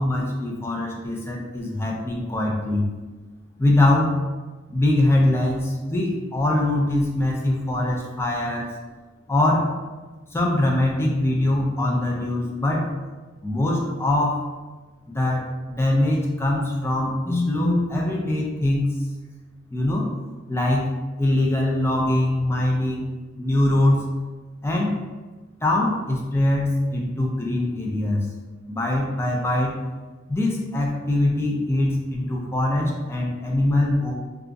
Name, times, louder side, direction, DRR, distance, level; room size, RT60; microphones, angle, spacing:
voice 1, 0.0-2.9 3.6-4.2 4.7-8.7 9.3-9.7 10.3-12.9 13.4-14.4 15.1-18.9 19.7-20.1 20.5-23.1 23.4-24.0 24.6-24.9 25.6-28.3 28.7-29.8 30.3-34.1, left 1 dB, 15° left, -2 dB, 0.4 m, -22 dB
2.4 x 2.3 x 3.8 m, 1.3 s
head